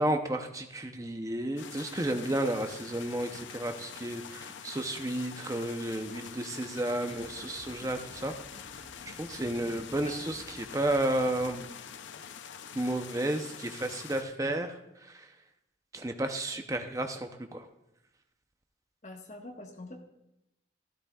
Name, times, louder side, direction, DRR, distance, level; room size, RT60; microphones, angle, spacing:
voice 1, 0.0-8.3 9.0-11.7 12.7-15.3 15.9-17.7, right 1 dB, 20° right, 5 dB, 0.6 m, -32 dB
sound 1, 1.6-14.2, left 7 dB, 85° left, 0.6 m, -45 dB
sound 2, 7.1-11.5, equal, ahead, 1.4 m, -55 dB
voice 2, 19.0-20.0, left 2 dB, 40° left, 2 dB, 1.3 m, -45 dB
13.0 x 12.0 x 2.3 m, 0.86 s
head